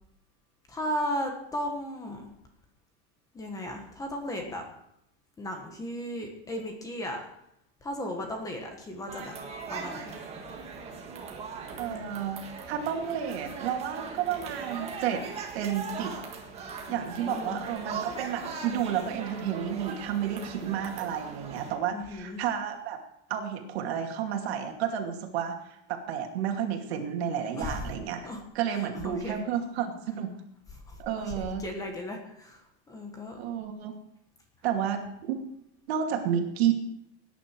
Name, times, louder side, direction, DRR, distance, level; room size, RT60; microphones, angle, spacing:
voice 1, 0.7-2.3 3.3-4.7 5.4-7.2 7.8-9.3 9.7-10.2 11.9-12.1 14.1-14.2 16.8-17.6 21.9-22.4 27.6-27.8 28.2-28.4 28.8-29.4 30.9-33.4, left 1 dB, 10° left, 3 dB, 1.6 m, -36 dB
sound 1, 9.1-21.8, right 5 dB, 20° right, 1.7 m, -40 dB
voice 2, 11.8-15.3 15.5-16.1 16.9-23.0 23.3-28.2 28.5-30.4 31.0-31.7 33.4-33.9 34.6-35.4 35.9-36.7, right 9 dB, 70° right, 4 dB, 2.5 m, -31 dB
18.0 x 10.0 x 4.6 m, 0.77 s
supercardioid pair, 175°, 33 cm